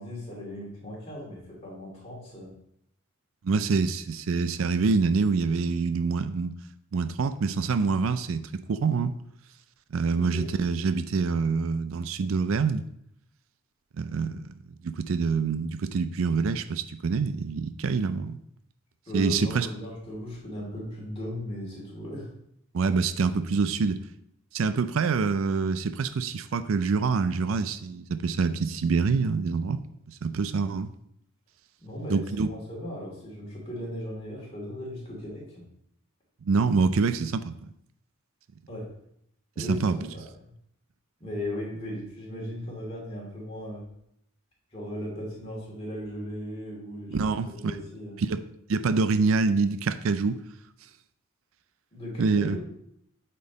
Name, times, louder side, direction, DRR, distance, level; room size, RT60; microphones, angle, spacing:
voice 1, 0.0-2.5 10.1-10.5 19.1-22.3 31.8-35.6 38.7-38.9 39.5-39.9 40.1-40.5 41.2-43.8 44.7-48.2 51.9-52.6, left 1 dB, 25° left, -4 dB, 2.7 m, -37 dB
voice 2, 3.4-6.5 6.9-9.1 9.9-12.8 14.0-14.4 14.8-18.4 19.1-19.7 22.7-24.0 24.5-29.8 30.2-30.9 32.1-32.5 36.4-37.5 39.6-40.0 47.1-47.8 48.2-48.4 48.7-50.4 52.2-52.6, right 4 dB, 70° right, 11 dB, 0.4 m, -26 dB
8.5 x 4.5 x 4.0 m, 0.74 s
head